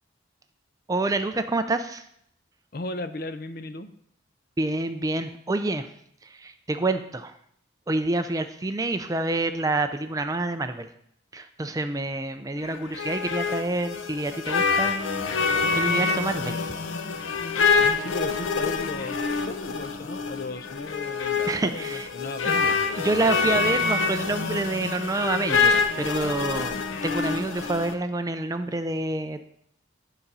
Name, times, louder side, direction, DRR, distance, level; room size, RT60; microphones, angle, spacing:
voice 1, 0.9-2.0 4.6-5.9 6.2-7.3 7.9-10.9 11.3-16.7 17.3-17.4 21.5-22.1 22.4-22.6 23.0-26.8 27.0-29.4, right 2 dB, 20° right, 9 dB, 0.4 m, -28 dB
voice 2, 2.7-3.9 17.7-23.1, left 2 dB, 50° left, 11 dB, 0.5 m, -36 dB
sound 1, 12.6-27.9, left 4 dB, 85° left, 0.7 m, -26 dB
11.0 x 4.0 x 5.4 m, 0.71 s
head